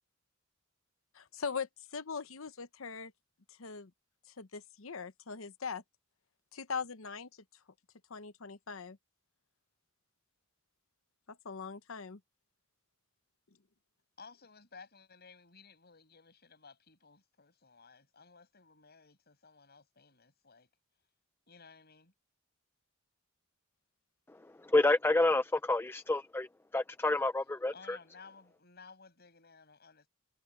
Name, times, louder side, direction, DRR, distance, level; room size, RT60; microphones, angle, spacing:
voice 1, 1.1-3.1 3.5-3.9 4.4-5.8 6.5-7.3 8.1-9.0 11.3-12.2, left 5 dB, 75° left, 1.0 m, -41 dB
voice 2, 14.2-20.7 21.5-22.1 27.7-30.1, left 5 dB, 50° left, 6.8 m, -57 dB
voice 3, 24.6-26.5 26.7-28.0, left 2 dB, 10° left, 0.4 m, -28 dB
head